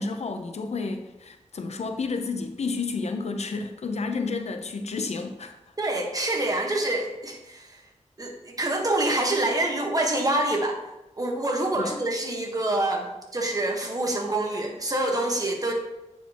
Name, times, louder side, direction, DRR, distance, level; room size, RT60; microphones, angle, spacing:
voice 1, 0.0-5.5 11.8-12.0, left 4 dB, 65° left, 6 dB, 0.7 m, -31 dB
voice 2, 5.8-7.8 8.2-10.8 11.2-15.7, right 1 dB, 30° right, 1 dB, 1.3 m, -26 dB
9.0 x 4.8 x 3.0 m, 0.97 s
wide cardioid pair, 85°, 12 cm